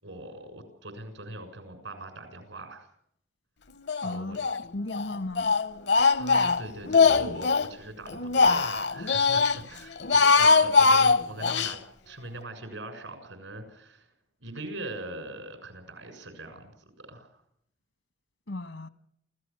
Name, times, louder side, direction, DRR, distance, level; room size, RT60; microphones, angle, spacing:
voice 1, 0.0-2.9 4.0-4.4 6.2-11.8 12.0-14.1 14.4-16.7 17.0-17.3, right 1 dB, 90° right, 6.8 m, -41 dB
Speech, 3.9-4.6 4.9-7.7 8.1-9.6 10.0-11.7, left 4 dB, 60° left, 0.8 m, -22 dB
voice 2, 4.0-5.6 18.5-18.9, left 2 dB, 80° left, 1.5 m, -36 dB
28.5 x 15.5 x 7.1 m
head